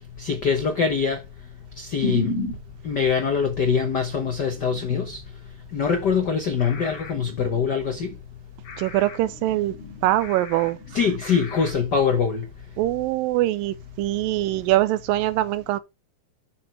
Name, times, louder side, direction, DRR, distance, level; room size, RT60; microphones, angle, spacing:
voice 1, 0.2-1.2 1.8-2.3 2.8-5.2 5.7-8.1 10.9-12.4, left 6 dB, 90° left, 0.9 m, -23 dB
sound 1, 2.0-11.7, left 2 dB, 50° left, 3.2 m, -36 dB
voice 2, 8.8-9.7 10.0-10.8 12.8-15.8, right 15 dB, 85° right, 2.3 m, -23 dB
11.0 x 6.2 x 3.3 m
omnidirectional pair, 3.9 m